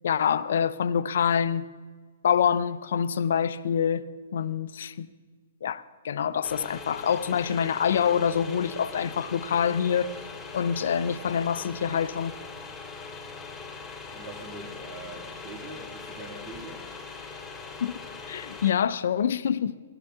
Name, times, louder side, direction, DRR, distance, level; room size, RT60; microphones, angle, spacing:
voice 1, 0.0-1.7 2.2-4.1 4.3-5.1 5.6-10.1 10.5-12.4 17.8-17.9 18.3-19.7, left 8 dB, 65° left, 0.5 m, -26 dB
sound 1, 6.4-18.7, left 4 dB, 5° left, 2.4 m, -41 dB
voice 2, 14.1-16.8, right 2 dB, 25° right, 1.9 m, -43 dB
15.0 x 11.5 x 3.6 m
hypercardioid pair, 125°, 0 cm